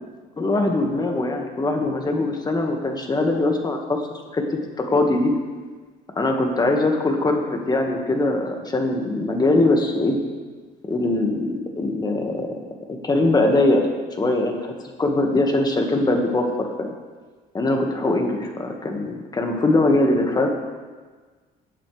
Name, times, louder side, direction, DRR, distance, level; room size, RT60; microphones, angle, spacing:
voice 1, 0.4-4.0 4.3-4.4 4.9-5.3 6.2-10.2 10.9-12.6 13.0-13.9 14.2-14.7 15.0-16.9 17.5-20.5, left 2 dB, 25° left, 3 dB, 1.6 m, -21 dB
16.5 x 8.4 x 3.3 m, 1.4 s
cardioid pair, 110°, 17 cm